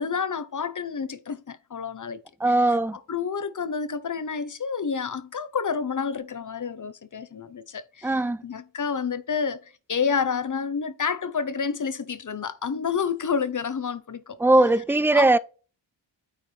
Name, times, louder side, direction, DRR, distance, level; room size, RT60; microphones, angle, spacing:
voice 1, 0.0-2.2 3.1-9.6 9.9-14.4 15.1-15.4, left 6 dB, 45° left, 0.8 m, -29 dB
voice 2, 2.4-3.0 8.0-8.4 14.4-15.4, right 2 dB, 5° right, 0.3 m, -20 dB
9.1 x 4.5 x 3.3 m
wide cardioid pair, 100°, 45 cm